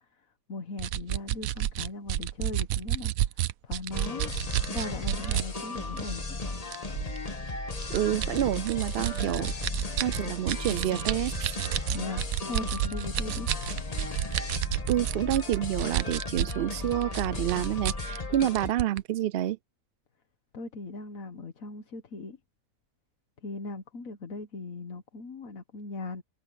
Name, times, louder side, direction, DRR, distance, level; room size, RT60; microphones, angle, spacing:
voice 1, 0.0-3.3 3.6-4.3 4.7-6.4 11.9-13.5 20.5-22.4 23.4-26.2, left 3 dB, 75° left, 1.8 m, -39 dB
sound 1, 0.8-5.5 6.0-6.1 6.7-7.2 7.8-16.6 16.9-19.0, right 12 dB, 85° right, 1.1 m, -30 dB
sound 2, 3.9-18.7, left 2 dB, 30° left, 1.5 m, -35 dB
voice 2, 7.9-9.5 10.0-11.6 14.9-19.6, right 12 dB, 65° right, 0.6 m, -28 dB
omnidirectional pair, 1.4 m